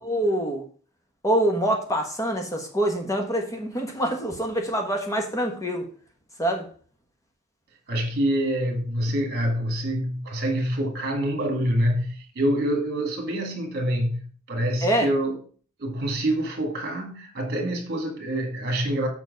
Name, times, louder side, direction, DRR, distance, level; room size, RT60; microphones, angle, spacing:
voice 1, 0.0-0.6 1.2-5.9 6.4-6.7 14.8-15.1, right 1 dB, 15° left, 1.4 m, -25 dB
voice 2, 7.9-15.4 15.8-19.1, right 1 dB, 50° right, 1.7 m, -26 dB
7.3 x 6.0 x 5.3 m
head